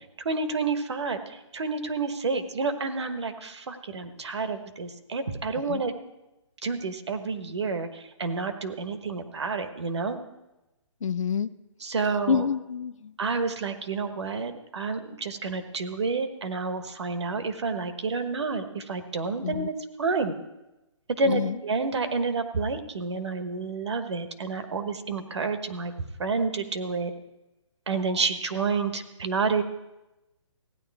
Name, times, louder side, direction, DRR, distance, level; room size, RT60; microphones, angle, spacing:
voice 1, 0.2-5.9 6.6-10.2 11.8-12.5 13.2-20.3 21.2-25.9 26.2-27.1 27.9-29.6, right 4 dB, 60° right, 8 dB, 1.2 m, -29 dB
voice 2, 11.0-11.5 12.3-13.1 19.4-19.7 21.2-21.6, left 6 dB, 85° left, 16 dB, 0.6 m, -27 dB
16.0 x 10.0 x 3.5 m, 0.98 s
hypercardioid pair, 180°, 16 cm